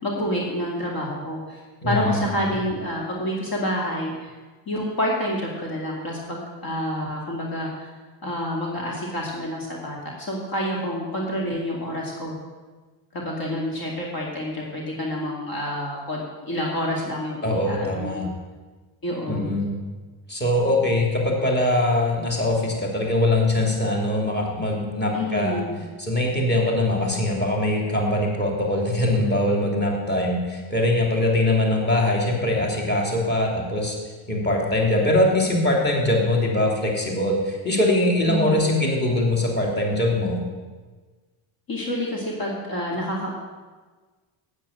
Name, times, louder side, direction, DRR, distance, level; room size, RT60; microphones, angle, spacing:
voice 1, 0.0-4.3 4.7-7.7 8.2-12.4 13.1-18.3 19.0-19.6 25.1-25.8 38.3-38.7 41.7-43.3, equal, 45° left, -2 dB, 2.5 m, -28 dB
voice 2, 1.8-2.2 17.4-18.2 19.3-19.8 20.3-25.6 26.0-34.0 34.3-40.4, left 1 dB, 20° left, -2 dB, 3.0 m, -22 dB
8.9 x 8.5 x 6.6 m, 1.3 s
cardioid pair, 95°, 49 cm